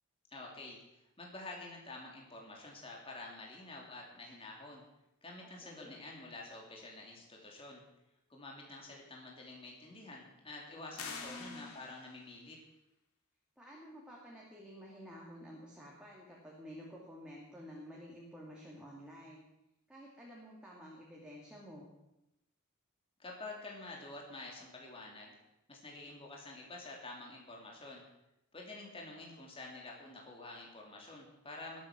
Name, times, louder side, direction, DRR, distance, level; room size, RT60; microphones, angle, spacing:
voice 1, 0.3-4.8 5.2-7.8 8.3-12.6 23.2-25.3 25.7-28.0 28.5-31.8, left 2 dB, 25° left, -1 dB, 3.2 m, -48 dB
voice 2, 5.4-6.0 10.9-11.7 13.6-19.4 19.9-21.9, equal, 5° right, -4 dB, 2.7 m, -51 dB
sound 1, 11.0-12.3, left 5 dB, 85° left, 2.4 m, -46 dB
21.0 x 8.6 x 6.2 m, 0.89 s
head